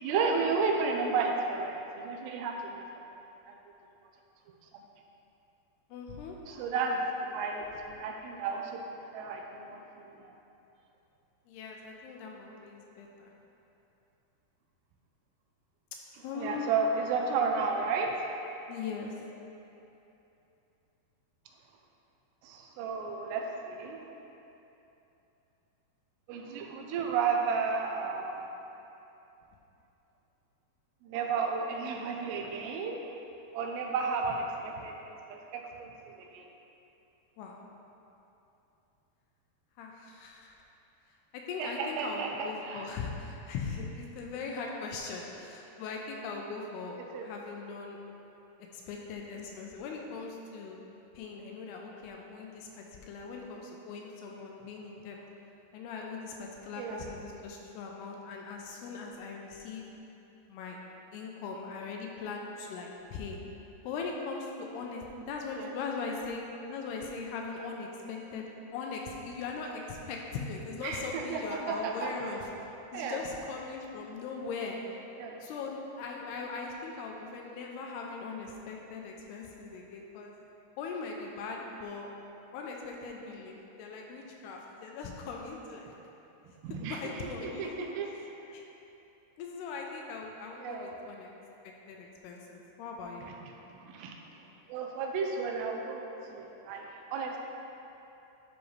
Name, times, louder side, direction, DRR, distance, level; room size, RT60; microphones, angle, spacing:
voice 1, 0.0-2.8 3.5-3.6 4.7-4.8 6.5-8.8 9.1-10.3 16.3-18.2 22.4-24.0 26.3-28.5 31.0-33.0 33.5-36.4 41.6-42.9 47.1-47.3 56.8-57.0 65.6-65.7 70.8-72.1 72.9-73.2 75.2-75.4 86.6-87.0 87.4-88.1 90.6-90.9 93.3-93.4 93.7-94.2 94.7-97.4, right 4 dB, 85° right, 1 dB, 2.7 m, -33 dB
voice 2, 5.9-6.4 11.5-13.3 16.2-16.7 18.7-19.1 37.4-37.6 39.8-40.6 41.3-48.0 48.7-50.8 51.1-55.2 55.7-59.9 60.5-60.8 61.1-63.4 63.8-66.4 66.7-68.5 68.7-72.5 72.9-74.8 75.4-80.3 80.8-82.1 82.5-85.9 86.7-87.8 88.2-88.3 88.5-88.6 89.4-91.3 91.6-93.3, left 4 dB, 80° left, 0 dB, 2.6 m, -40 dB
12.0 x 5.2 x 3.2 m, 2.9 s
omnidirectional pair, 4.9 m